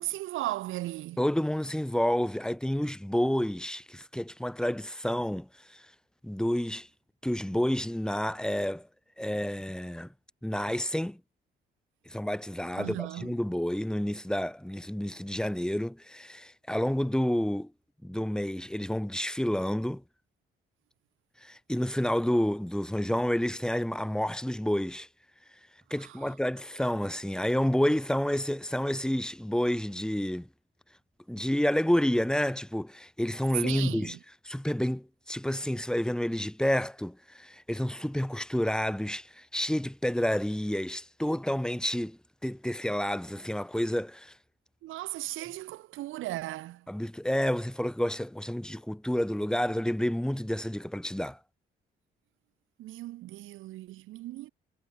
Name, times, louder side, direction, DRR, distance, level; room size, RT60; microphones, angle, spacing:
voice 1, 0.0-1.2 12.8-13.3 26.0-26.3 33.6-34.2 44.8-46.9 52.8-54.5, right 16 dB, 90° right, 1.2 m, -37 dB
voice 2, 1.2-5.8 6.2-6.9 7.2-8.9 9.2-10.1 10.4-11.2 12.1-17.7 18.0-20.0 21.4-25.1 25.9-30.5 31.3-34.1 34.4-44.3 46.9-51.4, equal, 5° left, 3.9 m, -29 dB
cardioid pair, 90°, 20 cm